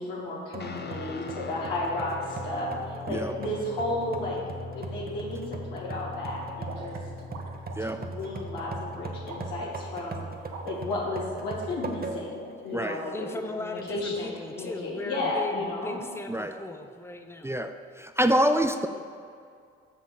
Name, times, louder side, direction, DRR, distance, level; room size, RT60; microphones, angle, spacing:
voice 1, 0.0-4.4 4.7-7.0 7.8-10.2 10.6-13.3 13.5-16.0, left 2 dB, 85° left, -4 dB, 2.2 m, -33 dB
sound 1, 0.5-12.5 12.9-13.0 13.8-14.4, right 3 dB, 30° right, 1.2 m, -40 dB
Guitar, 0.6-9.5, left 5 dB, 35° left, 0.9 m, -43 dB
sound 2, 6.6-11.6, right 3 dB, 65° right, 1.7 m, -45 dB
voice 2, 13.1-17.6, left 2 dB, 10° left, 6 dB, 0.9 m, -37 dB
voice 3, 18.0-18.9, equal, 10° right, 7 dB, 0.6 m, -25 dB
6.9 x 6.5 x 7.5 m, 2.3 s
hypercardioid pair, 50°, 29 cm